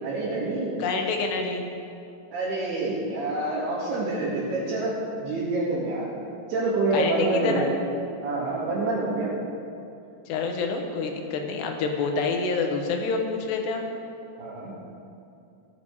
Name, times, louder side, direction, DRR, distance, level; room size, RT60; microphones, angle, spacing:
voice 1, 0.0-0.8 2.3-5.0 5.2-6.1 6.5-7.7 8.2-9.4 14.4-14.8, right 2 dB, 70° right, -9 dB, 4.1 m, -27 dB
voice 2, 0.8-1.7 6.9-7.7 10.3-13.8, left 4 dB, 80° left, 3 dB, 3.5 m, -27 dB
16.5 x 11.5 x 4.8 m, 2.6 s
omnidirectional pair, 4.8 m